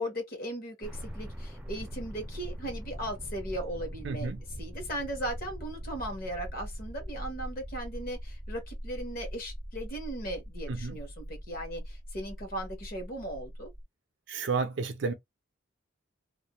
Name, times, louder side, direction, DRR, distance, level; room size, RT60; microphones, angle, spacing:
voice 1, 0.0-4.3 4.6-13.7, right 1 dB, 45° left, 1.0 m, -37 dB
sound 1, 0.8-13.8, equal, 5° right, 0.5 m, -41 dB
voice 2, 4.0-4.4 10.7-11.0 14.3-15.1, right 4 dB, 60° right, 0.5 m, -31 dB
2.4 x 2.1 x 2.9 m
head